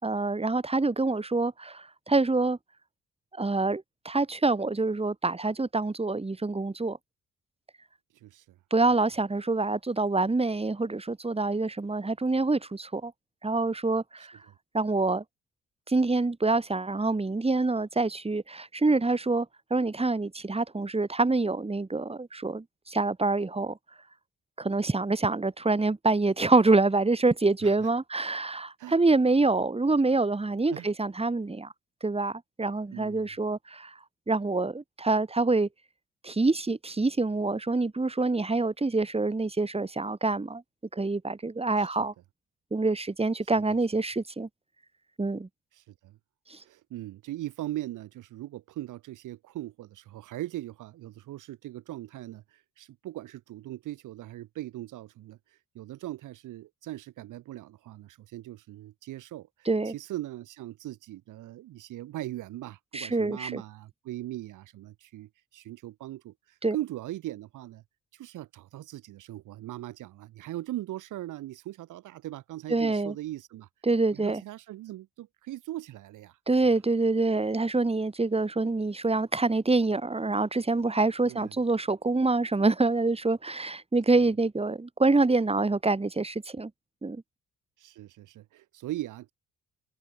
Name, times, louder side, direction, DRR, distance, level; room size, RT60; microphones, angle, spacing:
voice 1, 0.0-2.6 3.4-7.0 8.7-13.1 13.4-14.4 14.7-15.2 15.9-19.5 19.7-23.8 24.6-31.7 32.0-33.9 34.3-35.7 36.2-40.6 40.9-42.1 42.7-44.5 45.2-45.5 46.5-46.6 59.7-59.9 62.9-63.6 66.6-66.8 72.7-73.1 73.8-74.4 76.5-86.7 87.0-87.2, right 3 dB, 20° right, 6.0 m, -26 dB
voice 2, 8.2-8.6 27.6-27.9 28.8-29.0 30.7-30.9 32.9-33.2 41.8-41.9 43.6-43.7 45.8-46.2 46.6-55.4 55.8-67.8 68.1-73.7 74.1-76.4 81.2-81.6 84.2-84.3 87.8-89.3, right 15 dB, 85° right, 6.9 m, -40 dB
cardioid pair, 90°, 30 cm